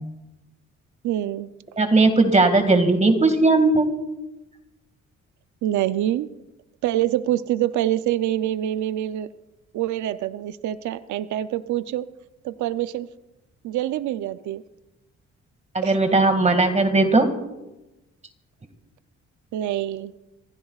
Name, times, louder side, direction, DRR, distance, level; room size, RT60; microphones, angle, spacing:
voice 1, 1.0-1.5 5.6-6.3 6.8-9.3 9.7-12.1 12.4-13.1 13.6-14.6 15.8-16.0 19.5-20.1, right 13 dB, 75° right, 13 dB, 0.6 m, -25 dB
voice 2, 1.8-3.9 15.7-17.3, right 3 dB, 25° right, 7 dB, 2.0 m, -18 dB
26.5 x 15.5 x 2.4 m, 0.98 s
cardioid pair, 90°, 30 cm